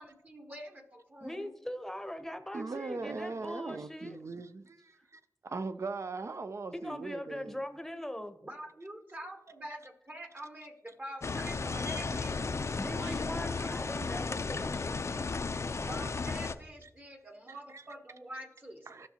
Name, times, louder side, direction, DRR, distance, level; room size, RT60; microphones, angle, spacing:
voice 1, 0.0-1.5 8.4-12.6 12.9-13.4 15.9-18.9, right 1 dB, 30° right, 1.2 m, -46 dB
voice 2, 1.2-4.2 5.0-5.1 6.7-8.4 12.7-15.0, left 1 dB, 5° left, 0.8 m, -41 dB
voice 3, 2.5-4.9 5.4-7.6 15.8-15.9 17.7-17.8 18.9-19.1, right 3 dB, 55° right, 0.5 m, -39 dB
sound 1, 11.2-16.5, left 4 dB, 55° left, 0.5 m, -34 dB
14.5 x 5.7 x 2.9 m
cardioid pair, 55°, 6 cm